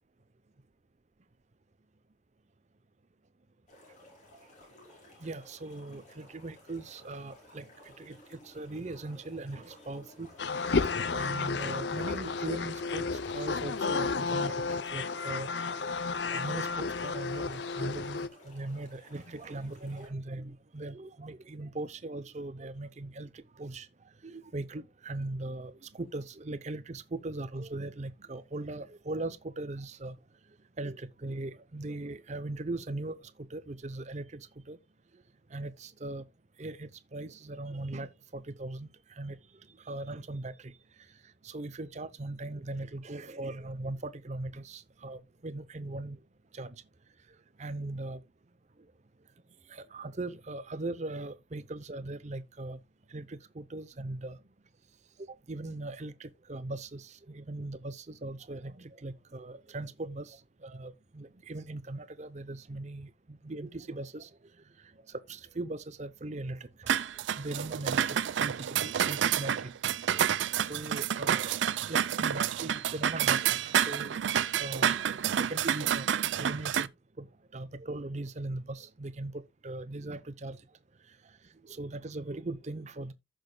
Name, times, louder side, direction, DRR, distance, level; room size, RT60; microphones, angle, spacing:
sound 1, 3.7-20.1, left 1 dB, 40° left, 4.9 m, -56 dB
voice 1, 5.2-7.7 8.0-8.2 8.5-10.3 11.1-14.6 14.9-15.9 16.3-23.9 24.2-30.2 30.8-33.2 33.5-34.8 35.5-36.2 36.6-38.9 39.2-39.4 39.9-40.5 41.4-46.2 46.5-46.7 47.6-48.2 49.7-52.8 53.1-54.4 55.5-64.3 65.3-66.9 67.3-69.5 70.1-70.2 70.6-71.5 71.9-74.2 74.6-76.1 76.4-76.9 77.2-77.3 77.5-80.6 81.7-83.1, right 2 dB, 40° right, 0.7 m, -39 dB
sound 2, 10.4-18.3, left 4 dB, 65° left, 0.6 m, -32 dB
sound 3, 66.9-76.9, right 9 dB, 75° right, 0.4 m, -29 dB
15.0 x 6.3 x 2.2 m
head